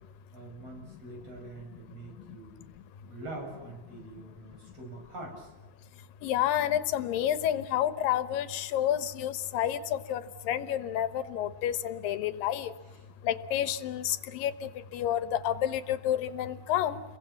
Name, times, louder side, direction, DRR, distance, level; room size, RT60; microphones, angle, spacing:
voice 1, 0.3-2.6 3.1-5.5 12.9-13.0, right 2 dB, 45° right, 0 dB, 8.3 m, -44 dB
voice 2, 6.2-12.7 13.2-17.0, left 11 dB, 80° left, 12 dB, 2.6 m, -30 dB
30.0 x 23.0 x 7.2 m, 1.3 s
omnidirectional pair, 4.0 m